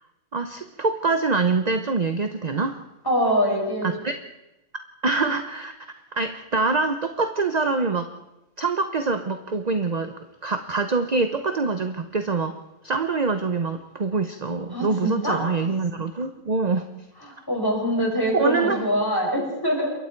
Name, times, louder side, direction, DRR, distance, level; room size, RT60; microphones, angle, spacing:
voice 1, 0.3-2.8 4.0-4.2 5.0-5.7 6.1-8.1 8.6-12.5 12.8-16.8 18.3-18.8, right 4 dB, 35° right, 7 dB, 0.9 m, -25 dB
voice 2, 3.0-3.9 14.7-15.4 17.2-19.9, equal, 15° left, -1 dB, 6.3 m, -24 dB
28.0 x 22.5 x 4.6 m, 0.96 s
omnidirectional pair, 1.5 m